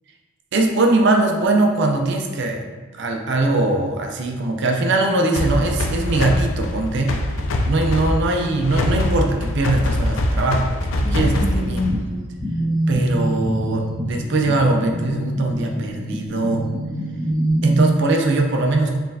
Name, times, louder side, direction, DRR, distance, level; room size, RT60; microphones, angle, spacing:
voice 1, 0.5-2.7 3.0-7.2 7.6-11.9 12.9-16.7 17.6-19.0, right 2 dB, 55° right, 2 dB, 0.5 m, -21 dB
sound 1, 5.3-12.1, left 1 dB, 70° left, 0.4 m, -23 dB
sound 2, 11.0-17.9, right 1 dB, 15° right, 1.1 m, -25 dB
4.3 x 3.2 x 2.7 m, 1.3 s
head